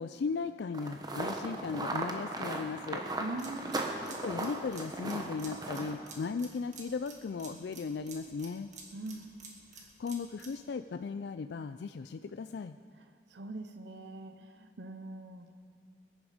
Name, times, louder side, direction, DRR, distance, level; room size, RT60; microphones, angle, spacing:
voice 1, 0.0-3.0 4.1-8.7 10.0-12.8, left 5 dB, 65° left, 9 dB, 0.3 m, -37 dB
sound 1, 0.7-5.9, right 2 dB, 20° right, 1.1 m, -37 dB
voice 2, 3.2-3.9 8.9-9.3 13.3-15.5, right 2 dB, 70° right, 8 dB, 0.8 m, -42 dB
sound 2, 3.4-10.6, right 4 dB, 40° right, 2.0 m, -51 dB
21.0 x 10.5 x 5.0 m, 2.2 s
head